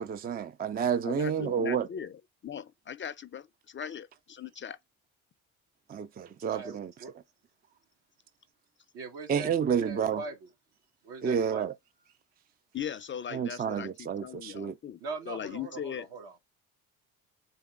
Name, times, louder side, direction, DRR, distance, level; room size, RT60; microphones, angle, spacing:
voice 1, 0.0-1.9 5.9-6.9 9.3-10.2 11.2-11.7 13.3-14.8, right 7 dB, 25° right, 0.4 m, -30 dB
voice 2, 1.0-4.8 12.7-15.0 15.3-16.1, left 8 dB, 30° left, 0.5 m, -39 dB
voice 3, 6.5-7.1 8.9-10.5 11.0-11.6 15.0-16.4, right 4 dB, 70° right, 1.8 m, -41 dB
4.0 x 3.5 x 3.6 m
hypercardioid pair, 65°, 40 cm